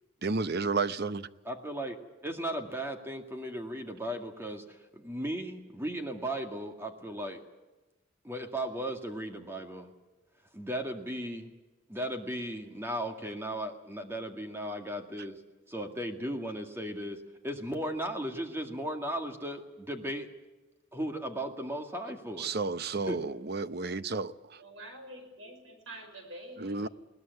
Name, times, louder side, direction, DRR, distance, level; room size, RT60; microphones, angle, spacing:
voice 1, 0.2-1.3 22.4-24.6 26.6-26.9, right 4 dB, 55° right, 0.8 m, -32 dB
voice 2, 1.5-7.4 8.2-9.9 10.5-11.5 11.9-15.4 15.7-20.3 20.9-22.6 23.1-23.2, right 1 dB, 15° right, 2.0 m, -36 dB
voice 3, 24.6-26.9, right 1 dB, 85° right, 5.3 m, -47 dB
21.0 x 18.5 x 9.5 m
head